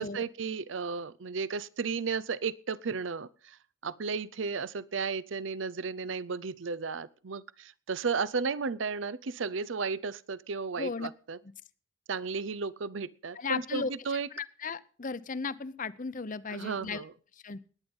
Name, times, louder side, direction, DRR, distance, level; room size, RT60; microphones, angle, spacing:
voice 1, 0.0-3.6 3.8-11.4 12.1-14.3 16.5-17.1, right 5 dB, 75° right, 20 dB, 0.6 m, -34 dB
voice 2, 10.8-11.1 13.3-13.9 14.3-17.0 17.4-17.6, left 4 dB, 45° left, 16 dB, 0.7 m, -35 dB
20.0 x 9.6 x 5.4 m, 0.42 s
head